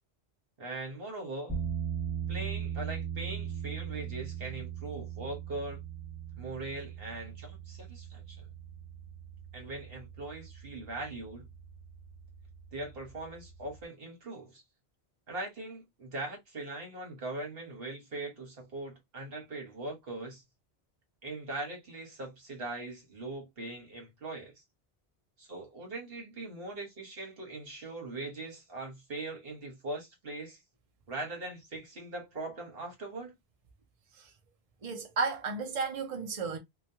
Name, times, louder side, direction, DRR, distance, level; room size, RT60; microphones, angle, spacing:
voice 1, 0.6-1.6 2.3-5.8 6.4-8.5 9.5-11.5 12.7-14.6 15.3-20.4 21.2-24.5 25.4-30.6 31.1-33.3, right 2 dB, 65° right, 1.4 m, -41 dB
sound 1, 1.5-13.8, right 8 dB, 5° right, 1.1 m, -40 dB
voice 2, 34.8-36.6, right 4 dB, 40° right, 0.7 m, -33 dB
3.0 x 2.3 x 2.6 m
omnidirectional pair, 1.1 m